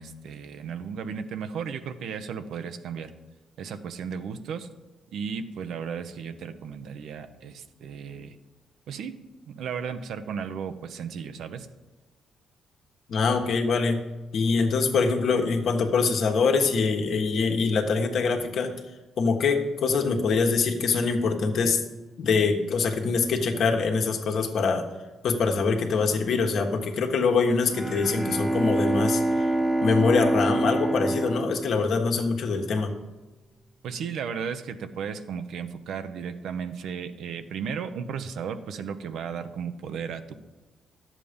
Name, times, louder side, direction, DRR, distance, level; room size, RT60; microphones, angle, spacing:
voice 1, 0.0-3.1 3.6-4.7 5.1-8.4 8.9-9.2 9.5-11.7 33.8-40.3, right 6 dB, 75° right, 10 dB, 0.8 m, -35 dB
voice 2, 13.1-14.0 14.3-18.7 19.2-21.8 22.2-24.8 25.2-29.5 29.8-32.9, left 4 dB, 65° left, 3 dB, 1.4 m, -24 dB
Bowed string instrument, 27.6-32.5, right 1 dB, 5° right, 1.0 m, -26 dB
11.0 x 7.5 x 5.2 m, 1.2 s
cardioid pair, 90°, 0 cm